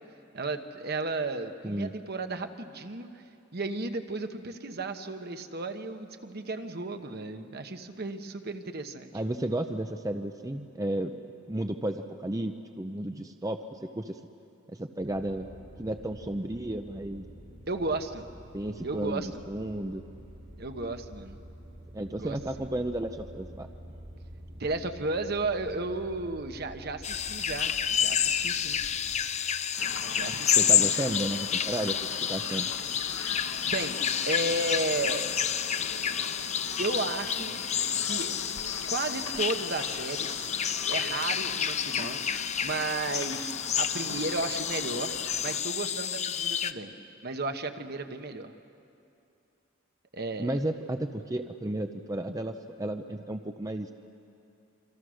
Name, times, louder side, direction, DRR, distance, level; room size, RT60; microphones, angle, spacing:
voice 1, 0.3-3.1 3.5-9.1 17.7-18.2 18.8-19.3 20.6-21.4 22.2-22.7 24.5-28.8 30.1-30.7 33.6-34.0 34.3-35.3 36.8-37.6 38.0-38.3 38.9-40.6 40.9-45.2 45.4-47.0 47.2-48.5 50.1-50.6, right 3 dB, 50° right, 7 dB, 1.2 m, -34 dB
voice 2, 9.1-11.1 11.5-14.2 14.7-15.5 15.8-17.2 18.5-20.0 21.9-23.7 30.6-31.9 32.3-32.7 50.4-53.9, right 1 dB, 15° right, 6 dB, 0.7 m, -33 dB
sound 1, 15.0-29.2, equal, 90° right, 7.8 m, -48 dB
sound 2, 27.0-46.7, left 8 dB, 35° left, 0.6 m, -29 dB
sound 3, 29.8-45.6, left 4 dB, 75° left, 1.5 m, -42 dB
27.5 x 25.5 x 6.4 m, 2.7 s
head